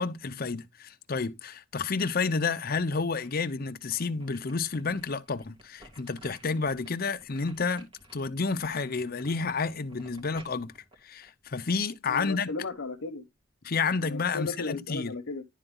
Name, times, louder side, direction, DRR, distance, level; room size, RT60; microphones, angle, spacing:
voice 1, 0.0-10.7 11.0-12.5 13.6-15.1, left 4 dB, 50° left, 0.7 m, -30 dB
sound 1, 3.1-3.5 3.9-12.0 12.4-12.5, right 1 dB, 25° right, 2.2 m, -55 dB
voice 2, 12.1-13.2 14.0-15.4, left 3 dB, 85° left, 1.0 m, -35 dB
11.0 x 3.9 x 3.7 m
head